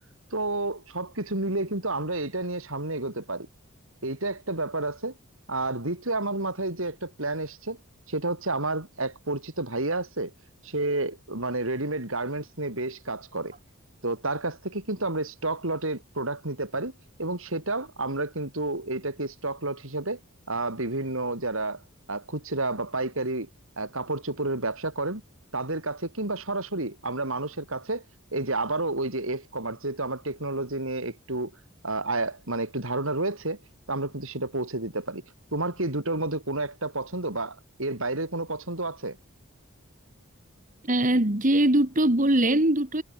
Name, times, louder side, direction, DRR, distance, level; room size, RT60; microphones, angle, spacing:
voice 1, 0.3-3.5 4.0-5.1 5.5-7.8 8.1-10.3 10.6-13.5 14.0-16.9 17.2-20.2 20.5-21.8 22.1-23.5 23.8-25.2 25.5-28.0 28.3-31.5 31.8-33.6 33.9-35.2 35.5-39.2, right 2 dB, 70° right, 4.6 m, -30 dB
voice 2, 40.9-43.0, right 1 dB, 35° right, 2.2 m, -21 dB
head